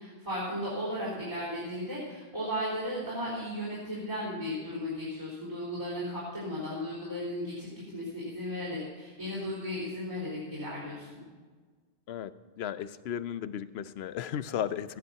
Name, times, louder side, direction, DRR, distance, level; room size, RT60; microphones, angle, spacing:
voice 1, 0.0-11.1, equal, 30° right, -8 dB, 4.1 m, -35 dB
voice 2, 12.1-15.0, left 9 dB, 85° left, 15 dB, 0.9 m, -35 dB
15.5 x 10.5 x 5.7 m, 1.4 s
omnidirectional pair, 1.0 m